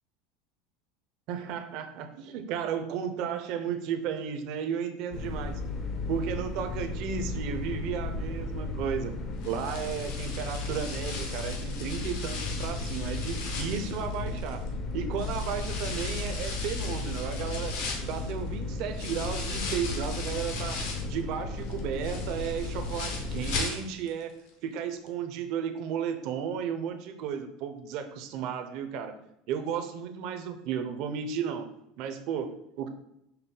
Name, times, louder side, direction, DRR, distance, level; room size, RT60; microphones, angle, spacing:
voice 1, 1.3-5.6 6.1-9.2 9.4-14.6 14.9-17.7 18.0-20.8 21.1-24.3 24.6-29.1 29.5-31.7 32.0-32.9, right 7 dB, 50° right, 7 dB, 0.5 m, -34 dB
sound 1, 5.1-23.6, left 3 dB, 30° left, 0.5 m, -35 dB
sound 2, 9.4-14.7 15.2-21.2 21.6-24.2 24.5-24.6 25.1-25.2, left 4 dB, 75° left, 0.9 m, -38 dB
5.4 x 2.2 x 3.7 m, 0.80 s
supercardioid pair, 150°, 0 cm